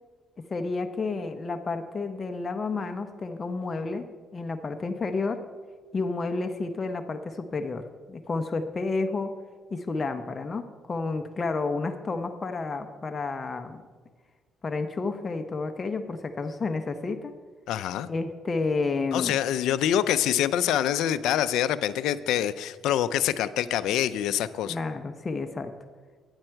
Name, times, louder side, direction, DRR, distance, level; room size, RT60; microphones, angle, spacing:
voice 1, 0.5-4.0 4.3-5.4 5.9-9.4 9.7-13.8 14.6-17.3 18.1-19.4 24.7-25.7, left 3 dB, 30° left, 6 dB, 0.6 m, -30 dB
voice 2, 17.7-18.1 19.1-24.8, left 11 dB, 85° left, 13 dB, 0.4 m, -25 dB
9.7 x 8.9 x 4.5 m, 1.5 s
cardioid pair, 100°, 0 cm